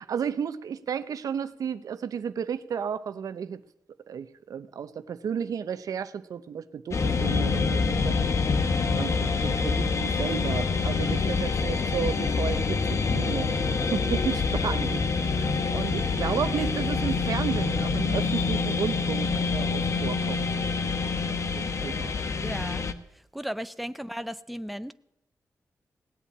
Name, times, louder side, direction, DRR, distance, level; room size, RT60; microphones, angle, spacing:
voice 1, 0.0-3.6 4.1-8.2 8.5-8.6 9.0-13.5 13.9-20.5 21.5-22.1, right 7 dB, 85° right, 12 dB, 0.8 m, -33 dB
sound 1, 6.9-22.9, left 4 dB, 55° left, 1.1 m, -26 dB
voice 2, 22.4-22.9 23.3-24.9, equal, ahead, 12 dB, 0.6 m, -35 dB
18.0 x 8.4 x 8.7 m, 0.81 s
wide cardioid pair, 100°, 6 cm